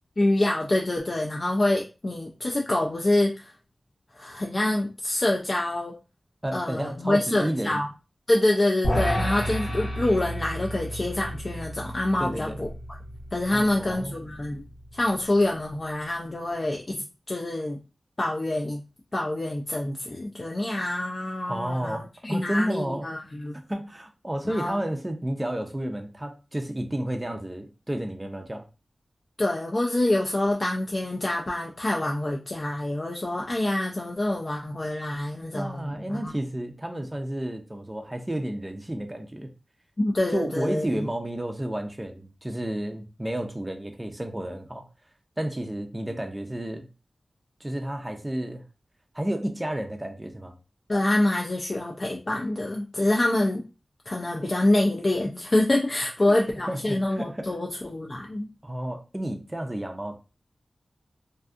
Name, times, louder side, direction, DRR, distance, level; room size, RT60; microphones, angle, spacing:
voice 1, 0.2-3.5 4.1-5.9 6.5-7.9 8.3-12.7 13.3-14.6 14.9-17.8 18.2-18.8 19.1-22.0 22.2-23.6 24.4-24.8 29.4-36.3 40.0-41.1 50.9-53.6 54.1-58.5, left 1 dB, 40° left, 0.4 m, -26 dB
voice 2, 6.4-7.8 12.2-12.6 13.5-14.2 21.5-23.1 23.7-28.7 35.5-39.5 40.3-44.9 45.4-46.9 47.6-48.6 49.1-50.6 56.2-56.4 56.7-57.5 58.6-60.2, right 1 dB, 20° right, 0.4 m, -31 dB
sound 1, 8.8-15.2, equal, 80° left, 0.9 m, -32 dB
2.6 x 2.3 x 2.4 m
wide cardioid pair, 70°, 0 cm